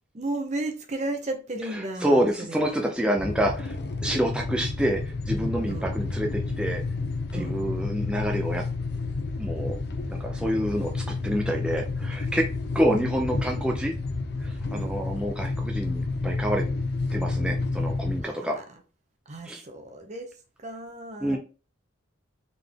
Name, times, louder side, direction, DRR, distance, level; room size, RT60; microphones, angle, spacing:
voice 1, 0.1-2.7 5.7-5.9 7.3-7.5 14.7-14.9 18.2-18.5 19.3-20.3 20.6-21.4, right 2 dB, 35° right, 0.7 m, -34 dB
voice 2, 1.6-6.8 7.3-8.6 9.4-9.8 10.1-12.5 12.7-13.9 14.4-16.7 17.1-18.6 19.4-19.6 21.2-21.4, equal, 5° right, 0.5 m, -27 dB
sound 1, 3.1-18.2, left 3 dB, 55° left, 0.7 m, -30 dB
3.8 x 3.6 x 3.5 m
head